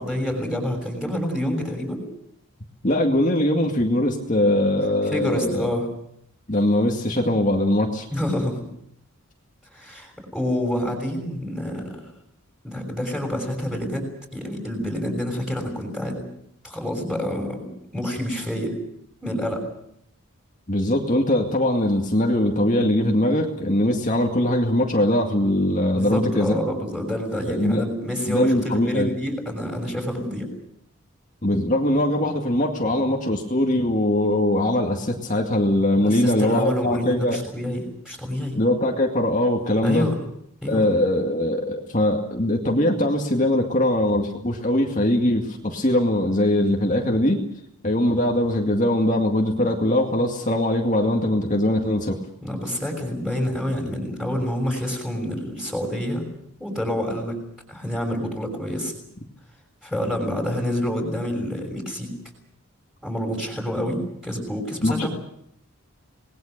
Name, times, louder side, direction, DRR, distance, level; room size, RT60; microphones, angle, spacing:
voice 1, 0.0-2.0 5.1-5.9 8.1-8.7 9.7-12.0 12.6-14.0 14.3-16.3 16.6-18.7 19.2-19.6 25.9-30.5 35.9-38.6 39.8-40.1 40.6-40.8 52.4-56.2 56.6-57.4 57.7-58.9 59.8-62.1 63.0-65.1, left 1 dB, 5° right, 1 dB, 6.1 m, -27 dB
voice 2, 2.8-5.7 6.5-8.1 20.7-26.6 27.5-27.8 28.3-29.1 31.4-37.4 38.6-40.1 40.7-47.4 47.8-52.2 64.8-65.1, left 1 dB, 35° left, 1 dB, 2.1 m, -21 dB
27.0 x 20.0 x 6.7 m, 0.72 s
head